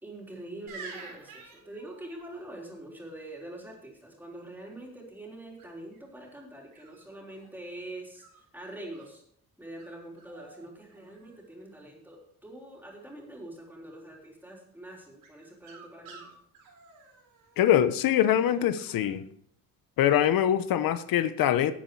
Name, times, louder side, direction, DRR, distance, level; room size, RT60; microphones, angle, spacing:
voice 1, 0.0-9.2 9.6-16.3, right 1 dB, 5° right, -2 dB, 3.7 m, -44 dB
sound 1, 0.7-2.4 5.6-6.0 6.7-7.6 8.1-9.1 9.8-9.9 10.2-10.7 10.9-11.5 15.2-17.7 18.2-19.1 20.0-20.2, right 4 dB, 90° right, 4.0 m, -50 dB
voice 2, 17.6-19.2 20.0-21.7, left 10 dB, 90° left, 13 dB, 0.9 m, -23 dB
12.5 x 8.4 x 4.7 m, 0.66 s
cardioid pair, 115°, 33 cm